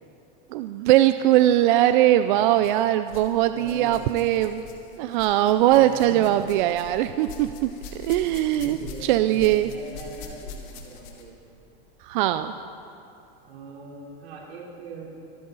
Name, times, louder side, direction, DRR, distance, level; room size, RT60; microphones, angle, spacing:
voice 1, 0.5-4.6 5.0-7.7 8.0-9.7 12.0-12.5, right 13 dB, 55° right, 10 dB, 0.4 m, -21 dB
sound 1, 1.6-1.8 2.6-3.3 3.6-11.4 12.3-12.4 13.2-13.3, left 4 dB, 50° left, 1.7 m, -43 dB
voice 2, 2.2-2.9 3.5-4.5 5.7-6.4 7.8-11.3 13.4-15.1, right 3 dB, 90° right, -3 dB, 3.7 m, -42 dB
24.5 x 9.4 x 4.0 m, 2.6 s
supercardioid pair, 170°, 30 cm